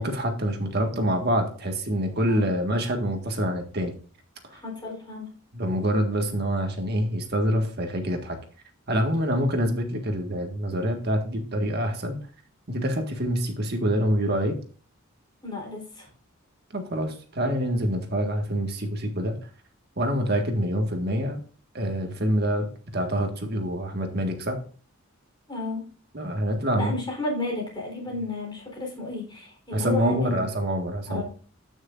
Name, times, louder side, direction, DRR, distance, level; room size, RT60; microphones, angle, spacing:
voice 1, 0.0-3.9 4.4-4.6 5.5-8.4 8.9-12.2 12.7-14.6 16.7-19.5 20.0-21.4 21.7-24.6 26.1-26.9 29.7-31.2, equal, 50° right, 4 dB, 1.7 m, -26 dB
voice 2, 4.5-5.3 15.4-16.1 25.5-25.8 26.8-30.5 31.1-31.2, left 2 dB, 20° left, -1 dB, 3.7 m, -32 dB
14.0 x 6.4 x 2.5 m, 0.41 s
head